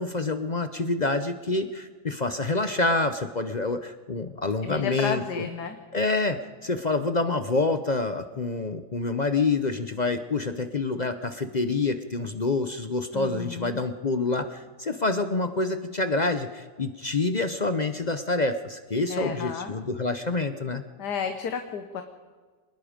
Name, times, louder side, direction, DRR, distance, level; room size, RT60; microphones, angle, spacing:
voice 1, 0.0-5.5 5.9-20.8, left 3 dB, 45° left, 9 dB, 0.5 m, -27 dB
voice 2, 4.6-5.8 13.1-13.8 19.1-19.7 21.0-22.0, left 7 dB, 70° left, 7 dB, 1.7 m, -32 dB
25.5 x 20.0 x 5.1 m, 1.5 s
omnidirectional pair, 1.8 m